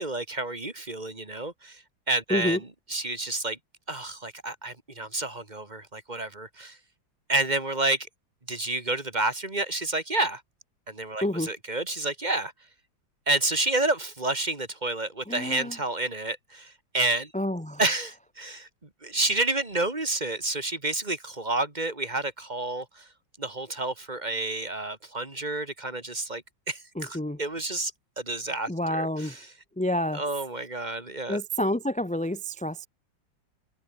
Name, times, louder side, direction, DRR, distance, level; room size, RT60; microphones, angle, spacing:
voice 1, 0.0-3.6 3.9-6.8 7.3-8.1 8.5-10.4 10.9-12.5 13.3-17.3 17.8-18.7 19.0-23.1 23.4-27.9 28.2-29.5 30.1-31.4, right 2 dB, 20° right, 2.5 m, -30 dB
voice 2, 15.3-15.7 17.3-17.8 27.0-27.4 28.7-29.3 29.8-30.2 31.3-32.9, left 1 dB, 5° left, 0.7 m, -28 dB
omnidirectional pair, 2.1 m